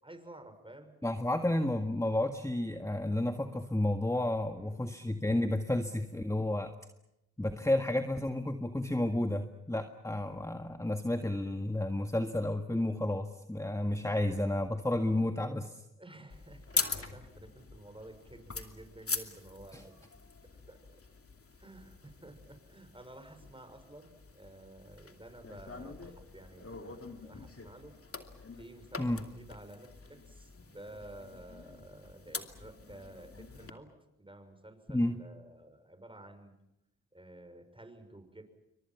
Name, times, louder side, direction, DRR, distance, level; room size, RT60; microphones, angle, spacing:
voice 1, 0.0-0.9 4.6-4.8 16.0-19.9 20.7-21.0 21.6-27.9 28.5-33.9 34.2-36.6 37.1-38.4, right 1 dB, 15° right, 7 dB, 6.2 m, -52 dB
voice 2, 1.0-6.7 7.4-15.8 19.7-19.8 29.0-29.2 34.9-35.2, left 1 dB, 10° left, 7 dB, 1.7 m, -31 dB
sound 1, 16.3-33.7, left 4 dB, 40° left, 2.6 m, -43 dB
28.5 x 24.0 x 6.0 m, 0.87 s
supercardioid pair, 40°, 36 cm